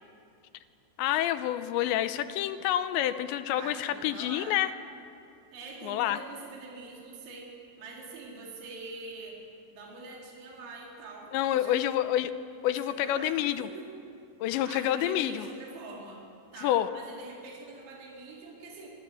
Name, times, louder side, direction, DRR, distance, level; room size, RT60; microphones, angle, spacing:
voice 1, 1.0-4.7 5.8-6.2 11.3-12.3 12.6-13.7 14.4-15.5 16.6-16.9, left 12 dB, 80° left, 11 dB, 2.9 m, -28 dB
voice 2, 3.5-4.6 5.5-7.5 7.8-9.4 9.7-11.8 12.7-13.9 14.7-16.2 16.5-18.9, right 3 dB, 70° right, -3 dB, 6.4 m, -44 dB
27.5 x 25.0 x 7.7 m, 2.5 s
omnidirectional pair, 5.5 m